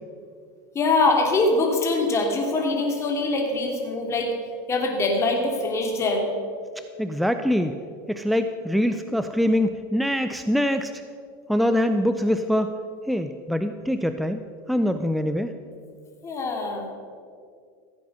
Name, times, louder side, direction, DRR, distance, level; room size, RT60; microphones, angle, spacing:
voice 1, 0.7-4.3 4.7-6.3 16.2-16.8, left 2 dB, 25° left, 1 dB, 2.9 m, -23 dB
voice 2, 7.0-7.8 8.1-10.9 11.5-12.7 13.1-14.4 14.7-15.5, equal, ahead, 8 dB, 0.5 m, -23 dB
15.5 x 8.4 x 6.6 m, 2.2 s
supercardioid pair, 120°, 11 cm